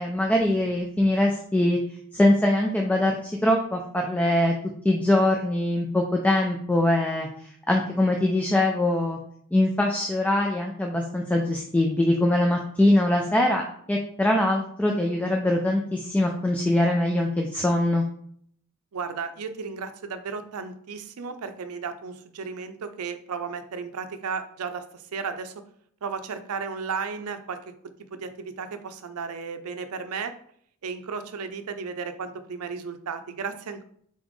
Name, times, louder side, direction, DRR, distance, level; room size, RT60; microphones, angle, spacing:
voice 1, 0.0-1.8 2.1-4.5 4.8-9.2 9.5-18.0, left 1 dB, 5° left, 1 dB, 0.3 m, -23 dB
voice 2, 18.9-25.6 26.0-27.7 28.1-30.4 30.8-33.8, right 5 dB, 85° right, 9 dB, 0.5 m, -34 dB
4.0 x 3.9 x 3.1 m, 0.65 s
head